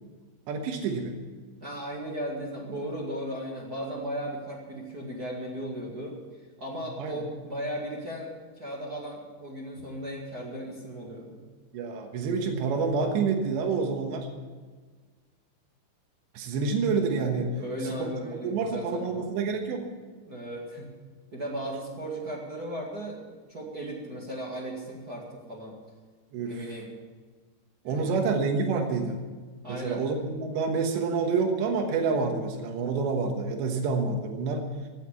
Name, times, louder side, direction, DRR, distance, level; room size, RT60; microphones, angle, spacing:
voice 1, 0.5-1.2 7.0-7.2 9.8-9.9 11.7-14.3 16.4-17.5 17.8-18.1 18.4-19.8 26.3-26.7 27.9-29.2 29.7-34.7, right 4 dB, 90° right, 3 dB, 3.5 m, -28 dB
voice 2, 1.6-6.2 6.6-11.4 17.6-19.3 20.3-20.9 21.3-25.8 26.4-26.9 27.8-28.2 29.6-30.0, right 1 dB, 40° right, -2 dB, 1.3 m, -36 dB
15.5 x 8.3 x 9.6 m, 1.4 s
omnidirectional pair, 4.9 m